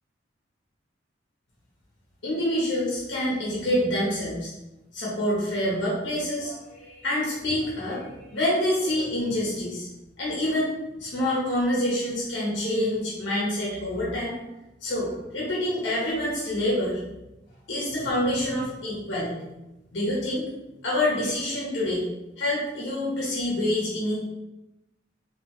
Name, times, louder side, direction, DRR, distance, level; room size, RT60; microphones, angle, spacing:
voice 1, 2.2-4.5 4.9-9.9 10.2-14.4 14.8-17.0 17.7-19.3 19.9-20.5 20.8-22.0 22.4-24.2, left 1 dB, 70° left, -6 dB, 1.2 m, -27 dB
3.9 x 3.5 x 3.2 m, 0.96 s
head